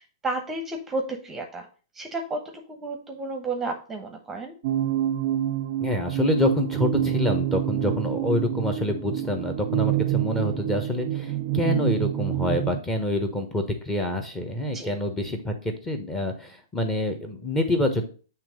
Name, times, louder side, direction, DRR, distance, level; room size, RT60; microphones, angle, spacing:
voice 1, 0.0-1.7 1.9-4.5 14.7-15.0, right 2 dB, 10° right, 4 dB, 0.9 m, -32 dB
sound 1, 4.6-12.8, right 12 dB, 45° right, 0.5 m, -27 dB
voice 2, 5.8-18.1, left 1 dB, 10° left, 5 dB, 1.1 m, -27 dB
7.3 x 3.2 x 5.1 m, 0.38 s
hypercardioid pair, 125°, 2 cm